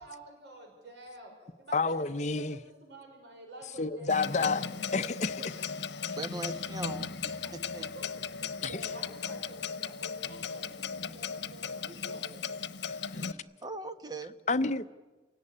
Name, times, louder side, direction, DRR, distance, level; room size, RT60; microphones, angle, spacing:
voice 1, 0.0-4.6 4.9-6.2 7.8-12.5, right 1 dB, 85° right, 5.9 m, -50 dB
voice 2, 1.7-2.6 3.8-4.6 4.9-5.3 8.6-8.7 12.9-13.3 14.5-14.9, left 4 dB, 40° left, 0.7 m, -29 dB
Clock, 4.1-13.3, left 6 dB, 80° left, 1.0 m, -37 dB
voice 3, 6.2-7.9 13.6-14.3, right 2 dB, 25° right, 1.1 m, -40 dB
29.0 x 17.5 x 10.0 m
head